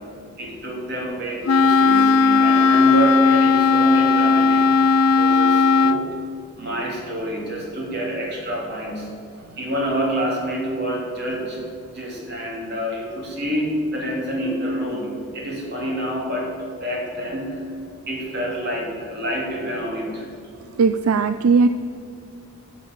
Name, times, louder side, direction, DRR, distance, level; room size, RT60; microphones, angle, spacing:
voice 1, 0.4-4.8 5.2-9.1 9.6-11.6 11.9-16.5 16.8-17.8 18.1-20.3, equal, 50° right, -2 dB, 3.3 m, -27 dB
Wind instrument woodwind instrument, 1.5-6.0, left 4 dB, 80° left, 0.5 m, -16 dB
voice 2, 20.8-21.7, right 4 dB, 75° right, 11 dB, 0.4 m, -17 dB
11.5 x 7.6 x 8.4 m, 2.4 s
head